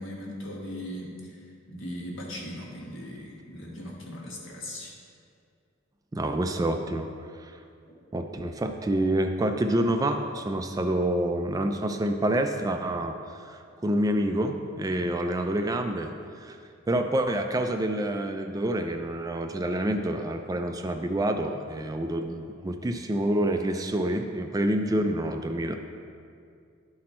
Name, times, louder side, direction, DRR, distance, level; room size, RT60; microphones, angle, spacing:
voice 1, 0.0-1.4 1.7-4.9 7.8-7.9 24.8-25.0, left 1 dB, 70° left, -2 dB, 1.4 m, -39 dB
voice 2, 6.1-7.1 7.4-7.5 8.1-13.2 13.4-16.1 16.4-16.6 16.9-25.8, right 1 dB, 20° right, 5 dB, 0.3 m, -27 dB
11.0 x 4.2 x 4.3 m, 2.3 s
head